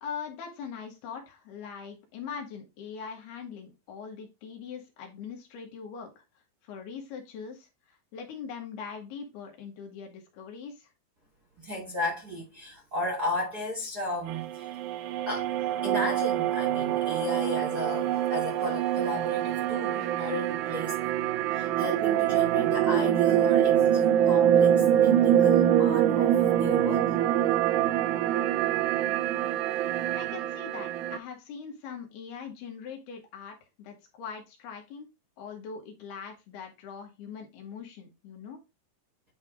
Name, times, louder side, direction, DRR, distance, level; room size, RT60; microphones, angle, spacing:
voice 1, 0.0-6.2 6.6-10.9 30.2-35.1 35.4-38.6, left 6 dB, 75° left, 3.3 m, -41 dB
voice 2, 11.6-14.7 15.3-15.6 15.8-21.1 21.5-27.2, left 1 dB, 30° right, 1.9 m, -34 dB
sound 1, 14.3-31.2, right 11 dB, 90° right, 2.1 m, -25 dB
9.7 x 3.4 x 3.5 m
omnidirectional pair, 4.8 m